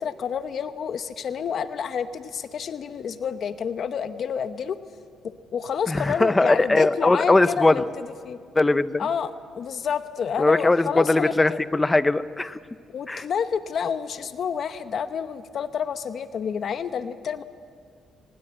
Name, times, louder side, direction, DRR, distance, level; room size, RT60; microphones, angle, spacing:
voice 1, 0.0-4.8 5.2-8.4 9.0-11.6 12.9-17.4, left 7 dB, 60° left, 11 dB, 0.8 m, -29 dB
voice 2, 5.9-7.8 8.6-9.1 10.4-12.6 13.1-13.2, left 2 dB, 15° left, 14 dB, 0.7 m, -20 dB
23.5 x 20.0 x 8.7 m, 2.1 s
cardioid pair, 90°, 0 cm